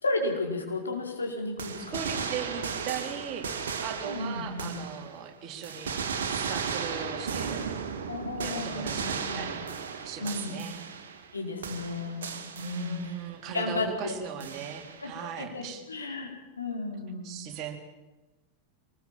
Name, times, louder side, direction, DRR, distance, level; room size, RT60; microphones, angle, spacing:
voice 1, 0.0-2.0 4.0-4.8 8.1-9.5 10.2-10.6 11.3-12.3 12.5-13.1 13.5-14.2 15.0-17.3, left 2 dB, 75° left, 2 dB, 4.5 m, -33 dB
sound 1, 1.6-5.3 5.6-11.4 11.6-13.3 14.4-15.1, right 6 dB, 60° right, 2.5 m, -35 dB
voice 2, 1.9-5.9 6.2-7.7 8.4-9.6 10.0-10.8 12.6-15.8 17.2-17.8, right 8 dB, 35° right, 4 dB, 3.6 m, -39 dB
24.0 x 20.0 x 7.5 m, 1.1 s
figure-of-eight pair, 90°, 0 cm